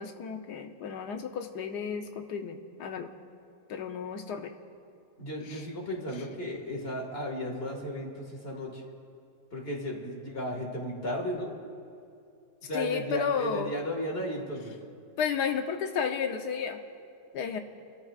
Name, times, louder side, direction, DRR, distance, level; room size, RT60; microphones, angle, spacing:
voice 1, 0.0-3.1 3.7-4.5 12.7-13.7 15.2-16.8 17.3-17.6, left 6 dB, 80° left, 6 dB, 1.4 m, -32 dB
voice 2, 5.2-8.8 9.5-11.5 12.7-14.7, equal, 35° left, 0 dB, 2.1 m, -35 dB
30.0 x 13.5 x 2.4 m, 2.6 s
omnidirectional pair, 1.8 m